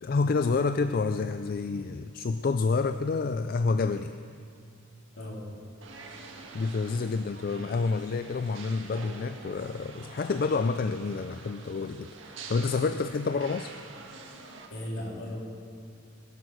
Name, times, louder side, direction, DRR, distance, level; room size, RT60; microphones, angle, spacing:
voice 1, 0.0-4.1 6.5-12.1 12.3-13.8, left 4 dB, 45° left, 10 dB, 0.4 m, -28 dB
voice 2, 5.2-5.5 14.7-15.4, left 1 dB, 70° left, -4 dB, 3.7 m, -36 dB
sound 1, 5.8-14.7, right 3 dB, 70° right, 1.6 m, -46 dB
22.0 x 8.1 x 6.5 m, 2.3 s
head